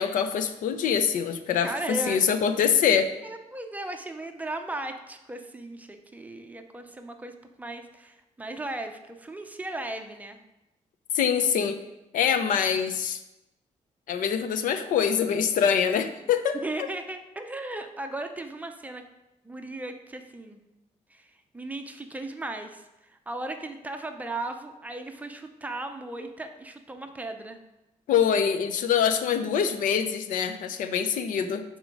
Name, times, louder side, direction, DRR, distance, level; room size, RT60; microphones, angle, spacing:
voice 1, 0.0-3.1 11.1-11.8 12.1-13.2 14.1-16.6 28.1-31.6, left 7 dB, 85° left, 10 dB, 0.6 m, -24 dB
voice 2, 1.6-2.2 3.2-10.4 16.5-19.0 19.4-20.6 21.1-22.8 23.1-27.6, right 2 dB, 10° right, 6 dB, 0.5 m, -36 dB
8.0 x 3.7 x 5.2 m, 0.95 s
cardioid pair, 155°, 13 cm